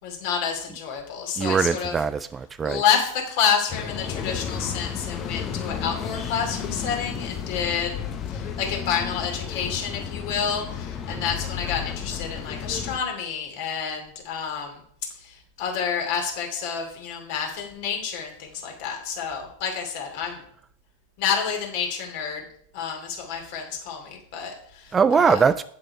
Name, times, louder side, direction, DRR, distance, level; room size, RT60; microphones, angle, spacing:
voice 1, 0.0-1.9 2.6-8.0 8.3-14.8 15.2-20.4 21.2-22.4 22.7-25.4, left 7 dB, 50° left, 2 dB, 2.8 m, -29 dB
voice 2, 1.4-2.8 11.1-11.2 24.9-25.6, right 6 dB, 20° right, 14 dB, 0.3 m, -21 dB
sound 1, 3.7-13.0, left 7 dB, 30° left, 1.1 m, -32 dB
8.7 x 7.7 x 4.7 m, 0.63 s
figure-of-eight pair, 90°, 0 cm